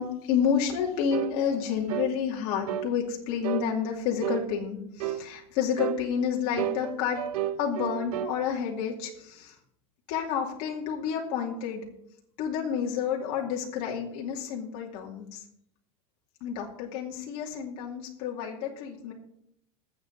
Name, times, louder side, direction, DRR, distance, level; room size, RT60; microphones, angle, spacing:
voice 1, 0.0-7.2 7.6-9.6 10.1-11.8 12.4-15.4 16.4-19.1, left 7 dB, 50° left, -1 dB, 2.5 m, -30 dB
sound 1, 1.1-1.4 1.9-2.1 2.7-2.9 3.4-3.7 4.2-4.5 5.0-5.3 5.8-6.0 6.6-8.4, right 11 dB, 90° right, 0.7 m, -31 dB
20.0 x 7.8 x 4.0 m, 0.75 s
supercardioid pair, 150°, 19 cm